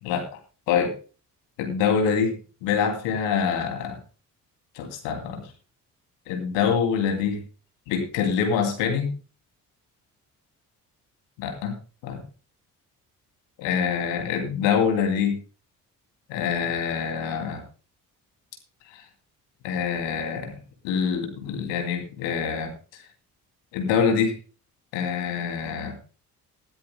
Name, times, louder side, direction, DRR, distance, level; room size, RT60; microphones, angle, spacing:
voice 1, 1.6-2.3 2.6-4.0 4.8-5.4 6.3-7.4 7.9-9.1 11.4-11.7 12.0-12.2 13.6-15.4 16.3-17.6 19.6-20.5 20.8-22.7 23.7-24.3 24.9-26.0, left 6 dB, 65° left, 5 dB, 2.7 m, -25 dB
20.0 x 13.0 x 2.2 m, 0.37 s
figure-of-eight pair, 45°, 46 cm